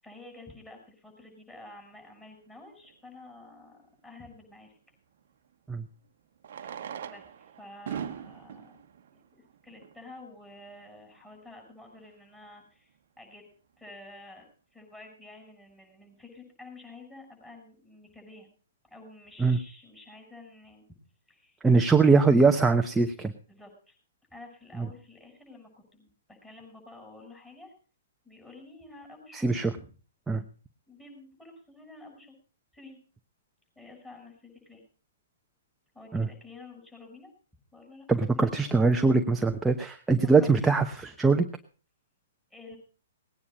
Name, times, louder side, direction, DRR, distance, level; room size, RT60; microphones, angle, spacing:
voice 1, 0.0-4.8 6.6-6.7 7.1-8.8 9.1-13.4 13.8-18.5 18.8-20.8 21.3-21.6 23.5-24.0 24.3-27.7 28.2-29.9 30.9-32.4 32.7-33.0 33.8-34.8 35.9-37.3 37.7-38.1 38.3-38.5 39.8-39.9 40.2-40.7 42.5-42.8, left 2 dB, 10° left, 1 dB, 7.3 m, -50 dB
Fireworks, 2.8-2.9 5.2-5.3 6.4-10.1 10.9-11.0 11.2-11.3 11.5-11.6 12.1-12.3, right 8 dB, 60° right, 1.1 m, -41 dB
voice 2, 21.6-23.3 24.8-24.9 29.3-29.7 30.3-30.4 36.1-36.3 38.1-41.4, right 4 dB, 5° right, 5 dB, 0.9 m, -22 dB
19.0 x 9.7 x 5.3 m, 0.40 s
hypercardioid pair, 125°, 0 cm